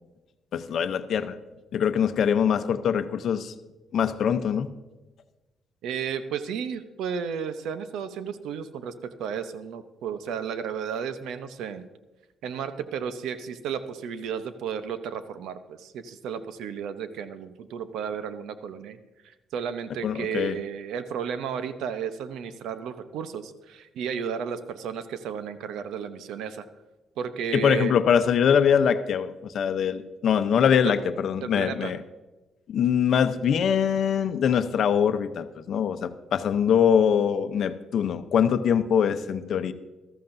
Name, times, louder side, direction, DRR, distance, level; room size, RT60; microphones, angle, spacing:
voice 1, 0.5-1.3 1.7-3.5 3.9-4.7 20.0-20.6 27.5-32.0 32.7-39.7, left 8 dB, 65° left, 11 dB, 0.7 m, -23 dB
voice 2, 5.8-11.9 12.4-19.0 19.5-26.6 27.2-27.9 30.8-30.9 31.4-31.9, right 7 dB, 85° right, 11 dB, 0.8 m, -33 dB
14.5 x 13.5 x 2.7 m, 1.1 s
cardioid pair, 90°, 0 cm